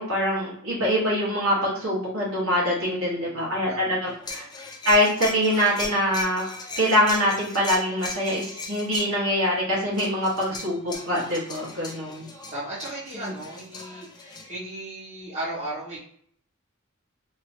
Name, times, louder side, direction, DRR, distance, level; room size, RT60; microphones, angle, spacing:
voice 1, 0.0-4.4 4.8-6.5 6.8-12.3 13.1-13.3, equal, 65° right, -6 dB, 1.4 m, -24 dB
voice 2, 2.9-3.4 3.7-4.0 11.8-16.0, right 1 dB, 30° right, -8 dB, 1.3 m, -36 dB
sound 1, 4.1-9.1 9.9-14.5, left 3 dB, 20° left, 0.4 m, -38 dB
3.0 x 2.9 x 2.8 m, 0.64 s
head